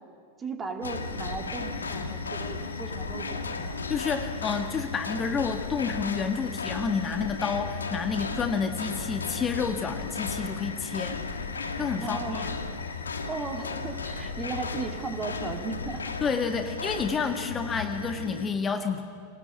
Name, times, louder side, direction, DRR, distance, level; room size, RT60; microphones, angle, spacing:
voice 1, 0.4-3.8 11.9-12.5 13.3-16.1, right 4 dB, 20° right, 4 dB, 2.6 m, -36 dB
sound 1, 0.8-18.5, left 4 dB, 75° left, 1.9 m, -35 dB
voice 2, 3.9-11.2 11.8-12.5 16.2-19.0, left 5 dB, 20° left, 6 dB, 1.6 m, -29 dB
28.0 x 19.5 x 8.8 m, 2.2 s
figure-of-eight pair, 90°, 0 cm